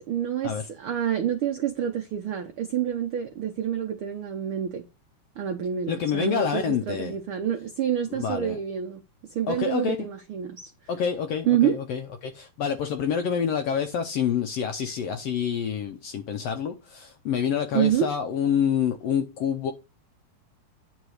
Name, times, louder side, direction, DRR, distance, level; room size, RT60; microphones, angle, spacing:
voice 1, 0.0-0.5 0.8-4.8 5.4-9.0 9.3-10.7 11.5-11.8 17.7-18.1, right 9 dB, 85° right, 1.1 m, -27 dB
voice 2, 5.9-7.1 8.1-8.6 9.5-10.1 10.9-19.7, left 7 dB, 75° left, 1.4 m, -27 dB
9.5 x 3.9 x 6.4 m
omnidirectional pair, 3.6 m